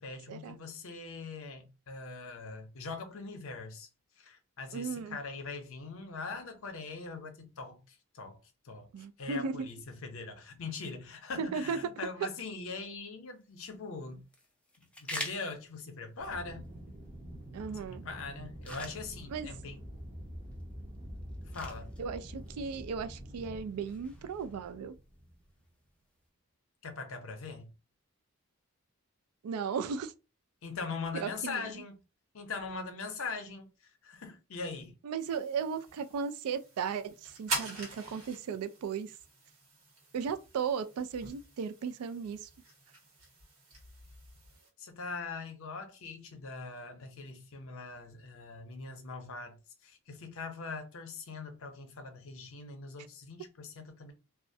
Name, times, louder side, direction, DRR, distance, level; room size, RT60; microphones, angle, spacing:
voice 1, 0.0-3.9 4.2-8.4 8.6-8.9 9.2-14.2 14.8-16.7 17.7-19.8 21.5-21.9 26.8-27.7 30.6-32.0 32.3-33.7 34.0-34.9 44.8-54.1, left 4 dB, 65° left, 0.6 m, -42 dB
voice 2, 4.7-5.2 8.9-9.7 11.4-11.8 17.5-18.0 19.3-19.5 22.0-24.9 29.4-30.1 31.1-31.8 35.0-39.1 40.1-42.5, right 6 dB, 80° right, 0.3 m, -36 dB
sound 1, 13.3-26.3, left 1 dB, 5° left, 0.3 m, -49 dB
Aircraft, 16.2-25.6, equal, 30° right, 0.6 m, -46 dB
sound 2, 35.2-44.7, right 3 dB, 65° right, 1.1 m, -44 dB
2.3 x 2.0 x 2.6 m
head